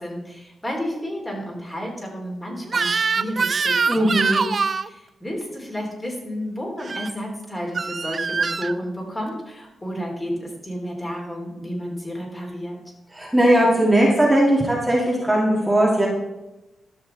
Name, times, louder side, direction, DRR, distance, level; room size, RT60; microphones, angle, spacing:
voice 1, 0.0-4.1 4.8-12.8, equal, 20° left, -1 dB, 3.4 m, -31 dB
Crying sobbing / Screech, 2.7-4.9 6.8-7.1 7.8-8.7, right 5 dB, 50° right, 0.4 m, -23 dB
voice 2, 3.9-4.4 13.1-16.1, right 1 dB, 10° right, -4 dB, 2.1 m, -18 dB
13.0 x 5.9 x 4.0 m, 1.0 s
cardioid pair, 60°, 0 cm